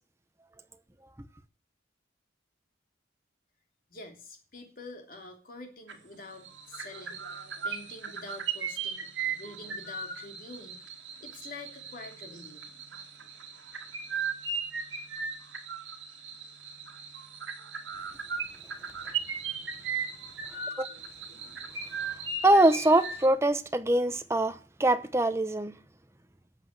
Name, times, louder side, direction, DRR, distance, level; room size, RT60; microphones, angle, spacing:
voice 1, 3.9-7.2 7.6-10.8 11.2-12.7, left 2 dB, 45° left, 3.0 m, -46 dB
sound 1, 5.9-6.2 6.4-23.3, right 5 dB, 75° right, 2.3 m, -37 dB
voice 2, 22.4-25.7, right 1 dB, 15° right, 0.7 m, -23 dB
13.5 x 7.9 x 7.9 m
head